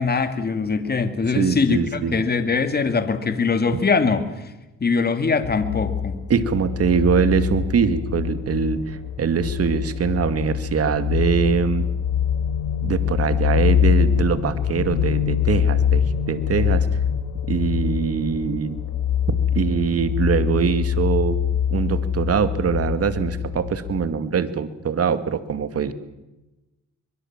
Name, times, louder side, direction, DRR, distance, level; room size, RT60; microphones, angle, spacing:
voice 1, 0.0-4.3 4.8-6.2, left 4 dB, 30° left, 9 dB, 2.6 m, -22 dB
voice 2, 1.3-2.2 6.3-11.9 12.8-16.0 16.3-16.9 17.5-18.8 19.3-21.4 21.7-25.9, right 6 dB, 50° right, 11 dB, 2.3 m, -23 dB
sound 1, 5.4-24.1, left 8 dB, 85° left, 3.1 m, -24 dB
24.5 x 22.5 x 7.5 m, 1.0 s
cardioid pair, 90°, 30 cm